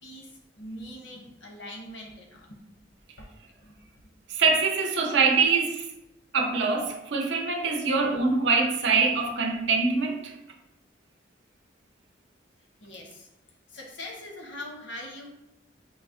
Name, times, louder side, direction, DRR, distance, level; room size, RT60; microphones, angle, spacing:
voice 1, 0.0-2.8 3.2-3.3 3.6-3.9 5.1-5.2 12.8-13.3 13.7-15.4, left 1 dB, 80° left, 0.9 m, -42 dB
voice 2, 4.3-5.9 6.3-10.4, right 4 dB, 75° right, 0.6 m, -24 dB
4.8 x 2.0 x 3.6 m
head